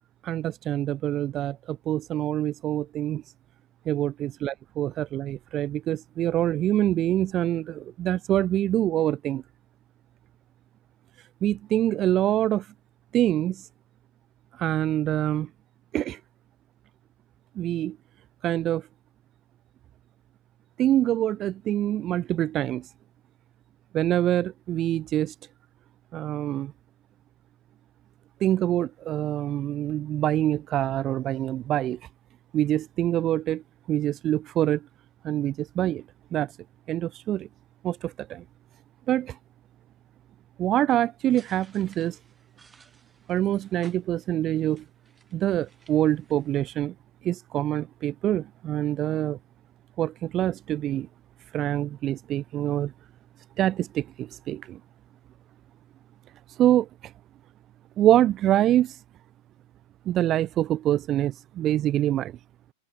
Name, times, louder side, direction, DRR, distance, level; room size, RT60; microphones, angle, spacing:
voice 1, 0.2-3.2 3.9-9.4 11.4-12.7 13.1-13.6 14.6-15.5 15.9-16.2 17.6-18.0 18.4-18.8 20.8-22.9 23.9-25.3 26.1-26.7 28.4-32.0 32.5-33.6 33.9-34.8 35.2-36.0 36.3-36.5 36.9-37.5 37.8-38.4 39.1-39.4 40.6-42.2 43.3-44.8 45.3-46.9 47.2-49.4 50.0-51.1 51.5-52.9 53.6-54.8 56.6-57.1 58.0-59.0 60.1-62.3, right 12 dB, 35° right, 0.9 m, -25 dB
sound 1, 41.2-46.8, right 4 dB, 15° right, 6.0 m, -58 dB
hypercardioid pair, 100°, 0 cm